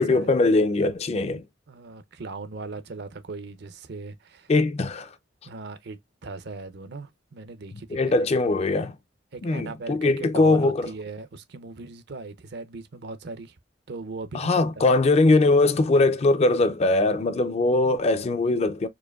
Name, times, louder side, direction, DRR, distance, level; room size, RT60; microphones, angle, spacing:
voice 1, 0.0-1.4 4.5-5.1 7.9-8.9 9.4-10.9 14.3-18.9, left 2 dB, 35° left, 0.4 m, -21 dB
voice 2, 1.7-4.5 5.5-8.3 9.3-13.5 13.9-14.9, right 3 dB, 60° right, 0.6 m, -38 dB
4.5 x 2.6 x 2.3 m
head